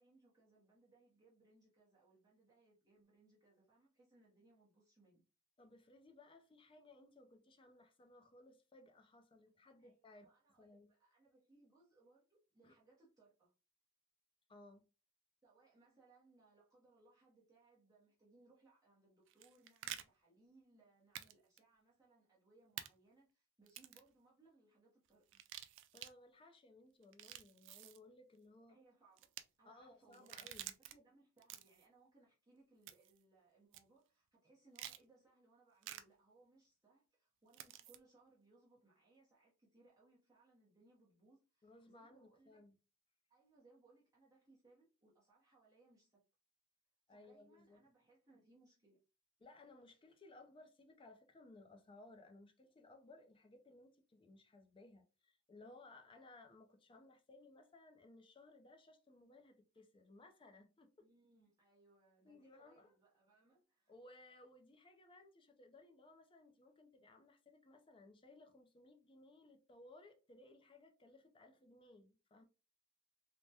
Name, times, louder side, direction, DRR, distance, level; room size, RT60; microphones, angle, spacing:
voice 1, 0.0-5.2 9.8-13.5 15.4-25.4 28.7-30.3 30.6-42.7 43.3-46.2 47.1-49.0 61.0-63.9, right 2 dB, 15° right, 0.8 m, -70 dB
voice 2, 5.6-10.3 10.6-10.9 12.6-12.7 14.5-14.9 25.9-28.8 29.6-30.7 41.6-42.8 47.1-47.8 49.4-61.1 62.2-62.9 63.9-72.4, left 2 dB, 25° left, 0.4 m, -61 dB
sound 1, 19.3-20.0 21.1-21.3 21.6-21.7 22.8-22.9 23.7-24.1 25.3-26.1 27.0-28.0 29.2-29.4 30.1-30.9 31.4-31.9 32.9-33.2 33.7-33.8 34.7-35.0 35.8-36.0 37.5-38.0, right 12 dB, 65° right, 0.3 m, -50 dB
3.3 x 2.1 x 2.7 m
head